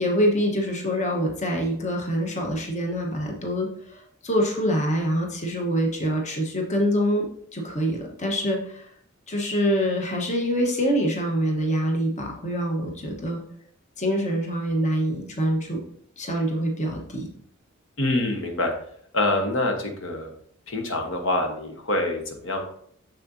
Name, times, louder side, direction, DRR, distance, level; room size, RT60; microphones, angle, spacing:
voice 1, 0.0-8.8 9.3-13.4 14.0-15.8 16.2-17.3, equal, 35° left, 1 dB, 1.2 m, -25 dB
voice 2, 18.0-18.7 19.1-20.3 20.7-22.6, left 2 dB, 65° left, 4 dB, 1.2 m, -25 dB
6.8 x 6.5 x 2.7 m, 0.64 s
head